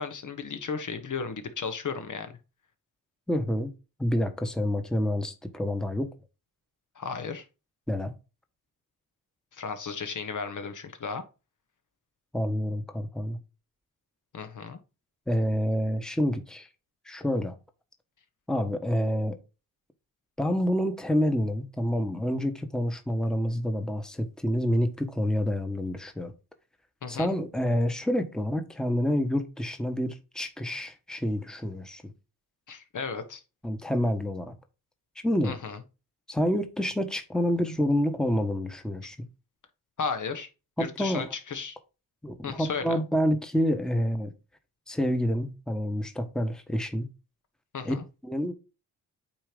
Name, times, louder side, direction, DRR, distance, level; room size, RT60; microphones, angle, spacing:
voice 1, 0.0-2.3 6.9-7.4 9.5-11.2 14.3-14.8 27.0-27.3 32.7-33.4 35.4-35.8 40.0-40.5 40.8-41.8 42.4-43.0 47.7-48.0, left 5 dB, 50° left, 1.3 m, -34 dB
voice 2, 3.3-3.7 4.0-6.1 7.9-8.1 12.3-13.4 15.3-16.7 17.0-17.6 18.5-19.4 20.4-26.3 27.1-32.0 33.6-34.5 35.2-35.6 36.3-39.2 40.8-41.3 42.2-44.3 44.9-47.1 47.8-47.9 48.2-48.5, equal, ahead, 1.2 m, -28 dB
8.7 x 3.0 x 5.1 m
cardioid pair, 80°, 39 cm